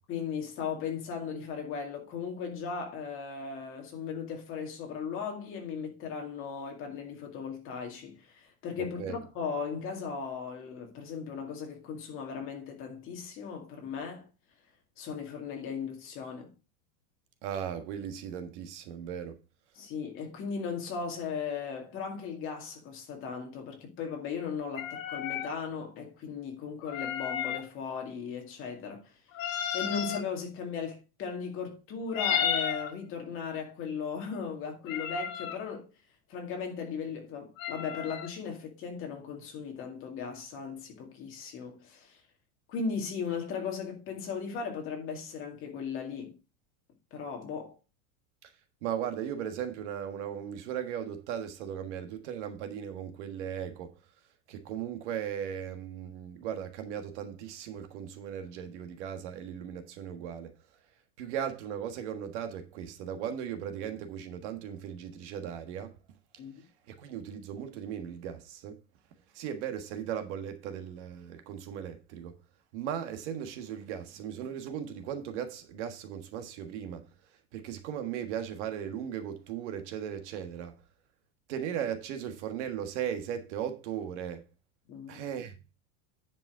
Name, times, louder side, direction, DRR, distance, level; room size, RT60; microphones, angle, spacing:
voice 1, 0.1-14.3 15.0-16.5 19.8-29.1 29.5-35.9 36.3-42.2 42.7-46.3 47.1-47.8 66.4-66.5 84.9-85.2, left 6 dB, 30° left, 2.1 m, -37 dB
voice 2, 17.4-19.4 48.4-48.5 48.8-53.9 54.5-60.5 61.2-66.0 66.9-68.8 69.3-72.4 72.7-77.1 77.5-80.8 81.5-84.4 85.1-85.6, right 9 dB, 55° right, 1.5 m, -37 dB
sound 1, 24.8-25.5 26.8-27.7 29.3-30.2 32.1-32.9 34.8-35.6 37.6-38.3, left 9 dB, 65° left, 1.6 m, -33 dB
10.0 x 5.3 x 4.5 m
supercardioid pair, 170°, 42 cm